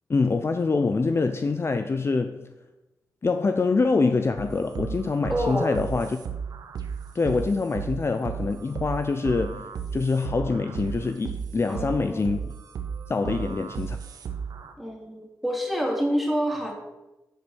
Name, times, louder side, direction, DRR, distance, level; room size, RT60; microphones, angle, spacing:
voice 1, 0.1-2.5 3.2-6.2 7.1-12.4 13.1-14.0, left 4 dB, 40° left, 0.6 m, -25 dB
sound 1, 4.4-14.7, right 7 dB, 85° right, 0.9 m, -35 dB
voice 2, 5.3-5.7 11.7-12.3 13.2-13.6 14.8-16.7, equal, ahead, 2.8 m, -28 dB
10.0 x 5.2 x 6.3 m
cardioid pair, 65°, 7 cm